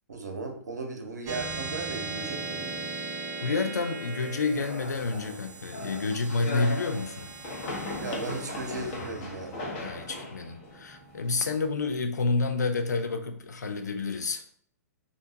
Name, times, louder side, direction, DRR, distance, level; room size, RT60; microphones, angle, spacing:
voice 1, 0.1-2.9 8.0-9.6, right 3 dB, 75° right, 3 dB, 0.5 m, -36 dB
sound 1, 1.3-12.1, right 3 dB, 25° right, 0.4 m, -39 dB
voice 2, 3.4-7.3 9.8-14.4, left 3 dB, 75° left, 7 dB, 0.4 m, -29 dB
sound 2, 4.6-11.6, left 2 dB, 45° left, 0.7 m, -38 dB
2.6 x 2.2 x 2.7 m, 0.62 s
figure-of-eight pair, 110°, 9 cm